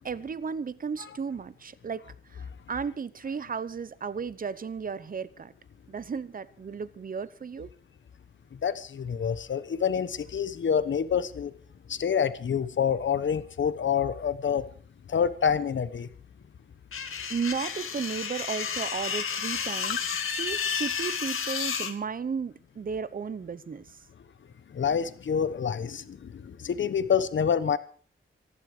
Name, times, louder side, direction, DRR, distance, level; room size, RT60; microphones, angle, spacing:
voice 1, 0.0-2.0 2.7-5.5 5.9-7.7 17.0-20.0 20.4-23.9, right 6 dB, 40° right, 0.9 m, -34 dB
voice 2, 8.6-11.5 11.9-14.6 15.1-16.1 19.8-19.9 24.7-27.8, left 7 dB, 65° left, 1.1 m, -27 dB
sound 1, 16.9-21.9, left 6 dB, 80° left, 2.1 m, -31 dB
25.0 x 11.5 x 5.0 m
wide cardioid pair, 155°, 21 cm